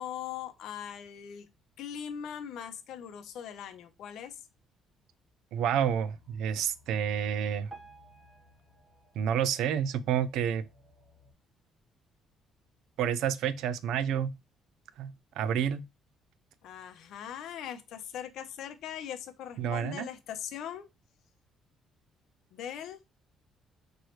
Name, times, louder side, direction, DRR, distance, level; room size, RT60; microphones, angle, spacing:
voice 1, 0.0-1.5 1.8-4.4 16.6-20.9 22.5-23.0, left 9 dB, 65° left, 0.7 m, -40 dB
voice 2, 5.5-7.7 9.1-10.6 13.0-14.3 15.0-15.8 19.6-20.1, right 8 dB, 75° right, 0.4 m, -29 dB
sound 1, 5.7-11.3, left 3 dB, 10° left, 0.9 m, -61 dB
Piano, 7.7-10.8 11.3-11.5 11.8-11.9 12.6-12.7 13.3-13.4, right 3 dB, 15° right, 1.0 m, -55 dB
4.6 x 3.1 x 3.0 m
cardioid pair, 170°, 0 cm